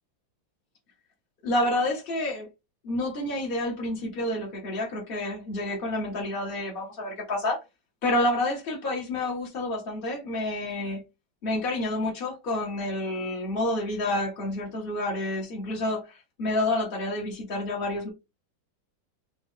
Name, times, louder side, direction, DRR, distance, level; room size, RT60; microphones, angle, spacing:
voice 1, 1.4-2.5 2.8-7.6 8.0-11.0 11.4-18.1, left 1 dB, 40° left, 0.9 m, -29 dB
3.6 x 2.9 x 3.6 m
omnidirectional pair, 2.2 m